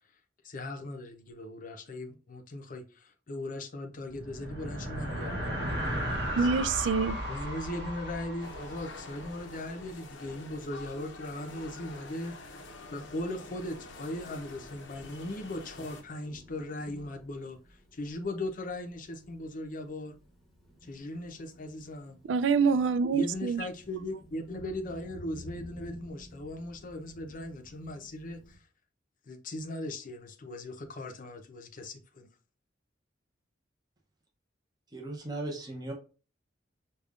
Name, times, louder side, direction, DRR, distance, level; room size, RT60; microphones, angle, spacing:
voice 1, 0.4-6.5 7.3-12.6 12.9-20.2 20.8-22.2 23.1-28.7 29.2-32.3, left 1 dB, 45° left, 0.6 m, -39 dB
sound 1, 4.0-9.7, equal, 65° right, 1.0 m, -35 dB
voice 2, 6.4-7.2 22.3-23.6, right 5 dB, 80° right, 0.3 m, -26 dB
sound 2, 8.4-16.0, left 2 dB, 85° left, 0.6 m, -47 dB
Thunder, 9.2-28.5, equal, ahead, 0.9 m, -54 dB
voice 3, 34.9-35.9, right 2 dB, 20° right, 0.6 m, -37 dB
5.0 x 2.3 x 2.4 m
head